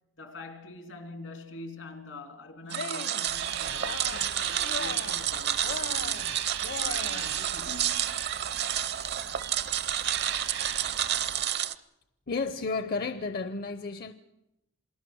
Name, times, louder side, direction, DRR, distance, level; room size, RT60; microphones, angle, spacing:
voice 1, 0.2-6.3 6.8-8.2, left 2 dB, 85° left, 3.3 m, -45 dB
Cheering, 2.6-3.3 3.7-4.4 4.6-5.3 5.6-7.4, left 4 dB, 65° left, 1.1 m, -39 dB
sound 1, 2.7-11.7, right 10 dB, 60° right, 0.7 m, -30 dB
sound 2, 3.3-11.5, right 8 dB, 80° right, 1.6 m, -39 dB
voice 2, 12.3-14.1, left 4 dB, 50° left, 0.7 m, -32 dB
27.5 x 19.0 x 6.3 m
head